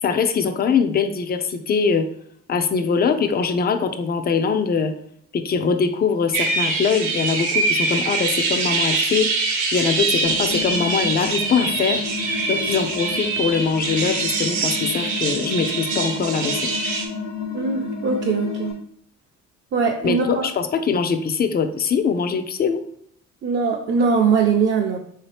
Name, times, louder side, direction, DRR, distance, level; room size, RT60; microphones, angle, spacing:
voice 1, 0.0-2.1 2.5-4.9 5.3-9.3 9.7-12.0 12.5-16.6 20.0-22.9, left 5 dB, 35° left, 8 dB, 0.4 m, -22 dB
sound 1, 6.3-17.1, right 3 dB, 75° right, 0.9 m, -24 dB
sound 2, 10.2-18.7, left 4 dB, 90° left, 1.0 m, -32 dB
voice 2, 17.5-18.7 19.7-20.5 23.4-25.0, right 5 dB, 40° right, -1 dB, 0.5 m, -21 dB
3.6 x 2.8 x 3.3 m, 0.65 s
cardioid pair, 90°, 30 cm